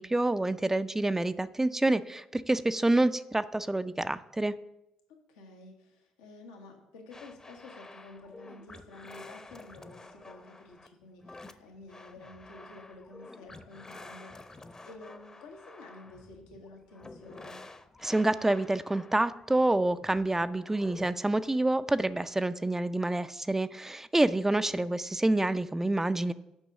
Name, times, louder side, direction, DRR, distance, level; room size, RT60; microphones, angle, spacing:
voice 1, 0.0-4.5 18.0-26.3, right 2 dB, 15° right, 12 dB, 0.4 m, -27 dB
voice 2, 5.1-17.6 24.3-24.9, left 2 dB, 85° left, 1 dB, 1.2 m, -51 dB
sound 1, 7.1-21.1, left 2 dB, 25° left, 0.8 m, -50 dB
7.0 x 5.3 x 6.4 m, 0.87 s
hypercardioid pair, 45°, 3 cm